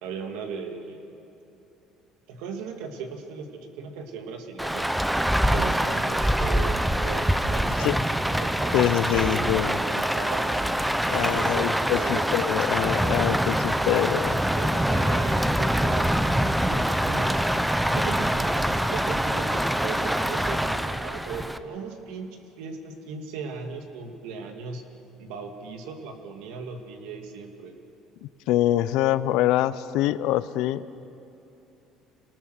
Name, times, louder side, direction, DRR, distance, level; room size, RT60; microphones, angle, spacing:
voice 1, 0.0-1.1 2.3-4.9 5.5-11.7 12.0-12.2 13.4-14.2 14.5-17.4 17.8-24.9 25.2-27.8, right 5 dB, 85° right, 4 dB, 2.3 m, -38 dB
Rain, 4.6-21.6, equal, 5° right, 0.7 m, -24 dB
voice 2, 8.7-9.8 11.1-14.4 28.2-30.8, left 14 dB, 80° left, 15 dB, 0.7 m, -25 dB
26.5 x 19.5 x 6.5 m, 2.9 s
cardioid pair, 115°, 0 cm